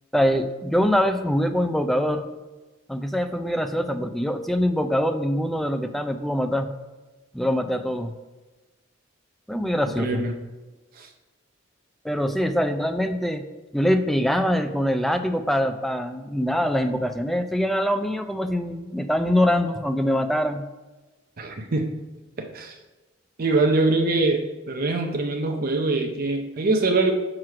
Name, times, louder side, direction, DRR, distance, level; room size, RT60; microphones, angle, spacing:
voice 1, 0.1-2.2 2.9-6.7 7.3-8.1 9.5-10.2 12.0-13.4 13.7-20.7, equal, ahead, 7 dB, 0.4 m, -23 dB
voice 2, 10.0-10.3 11.0-11.1 21.4-21.9 22.4-22.7 23.4-27.1, right 3 dB, 50° right, 3 dB, 0.6 m, -23 dB
6.0 x 4.8 x 4.7 m, 1.2 s
head